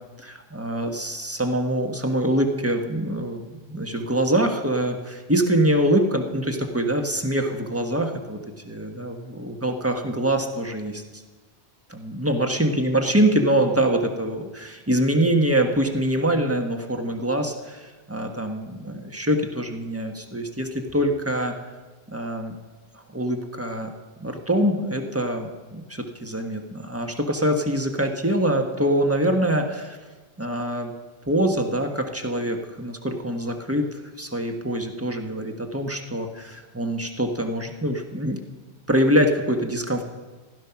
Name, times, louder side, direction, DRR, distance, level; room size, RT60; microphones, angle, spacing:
voice 1, 0.2-8.4 8.6-11.0 11.9-21.5 22.1-22.5 23.1-23.9 24.2-30.0 30.4-30.9 31.3-33.8 34.2-38.4 38.9-40.0, right 1 dB, 15° right, 3 dB, 1.3 m, -24 dB
16.0 x 12.0 x 5.9 m, 1.3 s
omnidirectional pair, 1.1 m